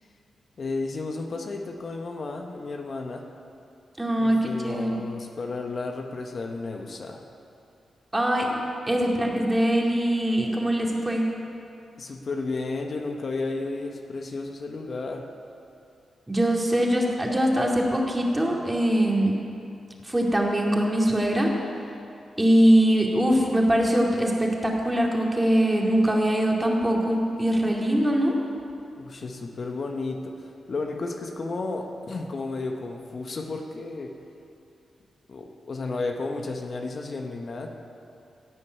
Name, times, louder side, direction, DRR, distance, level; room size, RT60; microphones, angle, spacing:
voice 1, 0.6-3.3 4.2-7.3 12.0-15.3 29.0-34.2 35.3-37.7, left 3 dB, 55° left, 3 dB, 1.1 m, -33 dB
voice 2, 4.0-5.0 8.1-8.6 8.9-11.2 16.3-19.3 20.0-21.5 22.4-28.4, right 1 dB, 15° right, -1 dB, 2.3 m, -22 dB
15.5 x 5.4 x 9.5 m, 2.7 s
cardioid pair, 65°, 0 cm